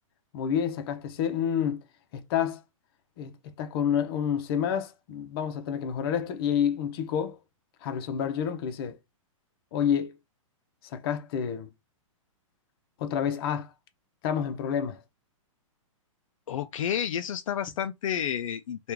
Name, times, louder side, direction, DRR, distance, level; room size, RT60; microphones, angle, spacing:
voice 1, 0.3-1.8 2.1-2.6 3.2-3.3 3.6-7.4 7.8-9.0 9.7-10.2 10.8-11.7 13.0-13.7 14.2-15.0, left 8 dB, 45° left, 0.8 m, -29 dB
voice 2, 16.5-18.9, left 9 dB, 70° left, 0.4 m, -30 dB
3.0 x 2.5 x 3.5 m
hypercardioid pair, 145°, 17 cm